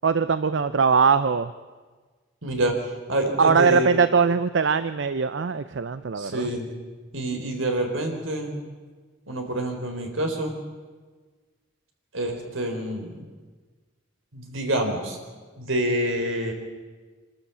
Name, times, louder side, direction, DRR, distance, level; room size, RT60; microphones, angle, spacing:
voice 1, 0.0-1.5 3.4-6.5, right 5 dB, 60° right, 13 dB, 0.5 m, -21 dB
voice 2, 2.4-4.0 6.1-6.7 7.1-8.5 9.3-10.5 12.1-13.2 14.3-15.2 15.6-16.5, right 1 dB, 80° right, 3 dB, 3.9 m, -27 dB
25.5 x 13.0 x 8.4 m, 1.4 s
head